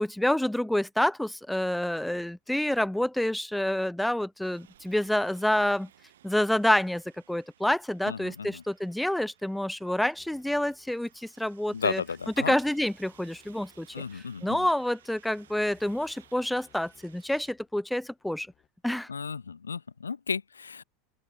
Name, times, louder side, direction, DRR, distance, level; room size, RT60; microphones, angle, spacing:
voice 1, 0.0-5.9 6.2-7.0 7.3-12.0 12.4-18.5 18.8-19.1, left 1 dB, 5° left, 0.6 m, -28 dB
sound 1, 4.4-17.5, right 11 dB, 75° right, 6.2 m, -60 dB
voice 2, 8.0-8.6 11.7-12.6 13.9-14.7 19.1-20.8, left 5 dB, 85° left, 0.5 m, -34 dB
sound 2, 10.1-18.7, left 10 dB, 35° left, 4.8 m, -64 dB
open air
hypercardioid pair, 85°, 0 cm